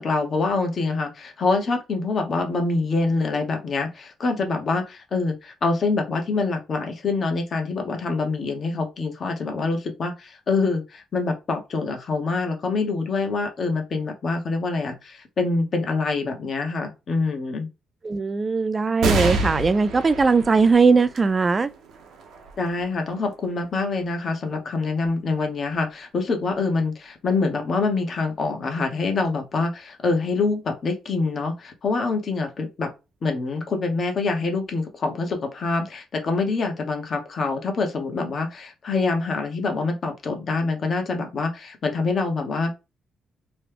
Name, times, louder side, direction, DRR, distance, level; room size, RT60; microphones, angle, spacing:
voice 1, 0.0-17.7 22.6-32.9 33.2-42.7, left 3 dB, 50° left, 1.0 m, -25 dB
voice 2, 18.0-21.7, right 4 dB, 30° right, 0.3 m, -19 dB
sound 1, 19.0-25.9 26.5-26.6 27.7-28.3, right 3 dB, 80° right, 0.7 m, -31 dB
3.0 x 2.3 x 3.4 m
cardioid pair, 90°, 0 cm